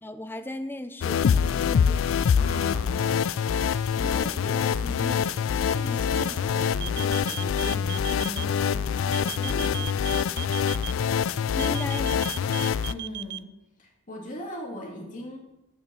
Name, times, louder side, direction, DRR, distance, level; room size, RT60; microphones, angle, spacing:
voice 1, 0.0-2.1 11.6-12.5, left 1 dB, 10° left, 9 dB, 0.6 m, -37 dB
sound 1, 1.0-12.9, left 7 dB, 65° left, 0.3 m, -25 dB
voice 2, 2.4-3.6 3.9-5.3 5.7-10.1 12.9-13.5 13.8-15.4, equal, 35° left, -1 dB, 2.3 m, -39 dB
sound 2, 6.8-8.4 9.1-10.9 11.6-13.4, right 13 dB, 50° right, 0.4 m, -36 dB
8.6 x 6.8 x 6.8 m, 0.94 s
head